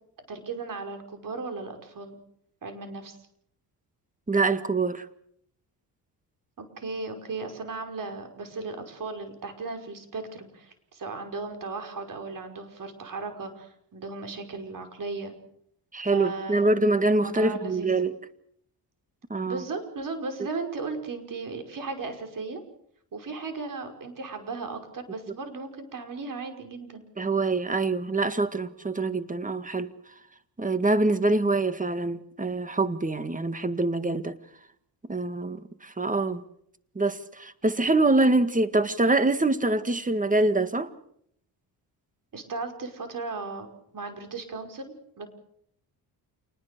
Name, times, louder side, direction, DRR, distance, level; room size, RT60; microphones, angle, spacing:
voice 1, 0.3-2.2 2.6-3.2 6.6-15.3 16.1-16.9 17.2-17.9 19.5-22.6 23.1-27.0 42.3-43.7 43.9-45.3, right 3 dB, 50° right, 5.5 m, -36 dB
voice 2, 4.3-5.1 15.9-18.1 19.3-19.6 27.2-29.9 30.6-34.4 35.1-36.4 37.0-40.9, right 2 dB, 20° right, 1.9 m, -25 dB
28.5 x 20.0 x 6.9 m
cardioid pair, 80°, 41 cm